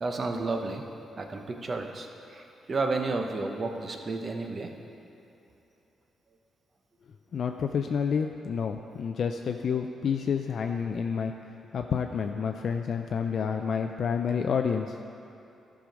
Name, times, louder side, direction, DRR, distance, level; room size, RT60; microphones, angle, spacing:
voice 1, 0.0-0.8 1.2-4.7, right 3 dB, 40° right, 4 dB, 0.8 m, -32 dB
voice 2, 7.3-11.3 11.7-15.0, left 6 dB, 65° left, 5 dB, 0.3 m, -29 dB
12.0 x 4.9 x 5.1 m, 2.8 s
cardioid pair, 80°, 0 cm